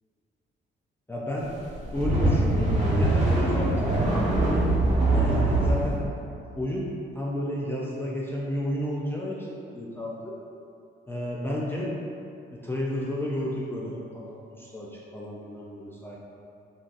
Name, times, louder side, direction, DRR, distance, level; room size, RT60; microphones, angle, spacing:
voice 1, 1.1-1.5 1.9-4.7 5.1-6.1 6.6-6.9 7.1-10.4 11.1-11.9 12.5-16.2, left 1 dB, 10° left, -5 dB, 0.4 m, -32 dB
sound 1, 1.7-5.9, right 2 dB, 35° right, 1.1 m, -23 dB
2.5 x 2.3 x 3.9 m, 2.6 s
cardioid pair, 90°, 20 cm